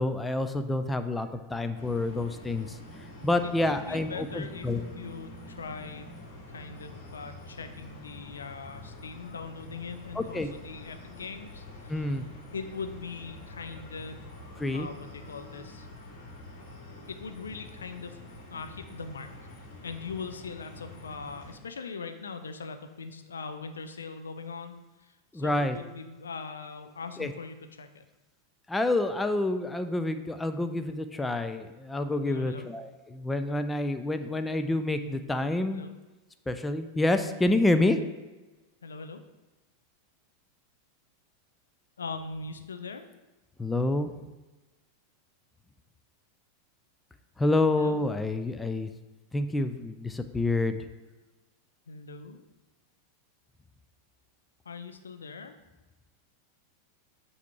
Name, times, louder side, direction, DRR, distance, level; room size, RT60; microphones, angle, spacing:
voice 1, 0.0-2.8 3.2-4.8 10.2-10.5 11.9-12.2 14.6-14.9 25.3-25.8 27.2-27.3 28.7-35.8 36.5-38.0 43.6-44.1 47.4-48.9 49.3-50.8, left 2 dB, 10° left, 9 dB, 0.4 m, -28 dB
sound 1, 1.7-21.6, left 1 dB, 50° left, 1.5 m, -46 dB
voice 2, 3.4-4.7 5.0-6.2 6.5-12.0 12.5-14.2 14.7-15.9 17.1-18.2 18.5-19.3 19.8-24.7 25.0-28.0 32.3-32.7 35.7-35.9 38.8-39.2 42.0-43.1 47.8-48.1 51.9-52.5 54.7-55.5, left 4 dB, 70° left, 8 dB, 0.5 m, -41 dB
8.1 x 2.8 x 4.7 m, 1.2 s
figure-of-eight pair, 90°, 0 cm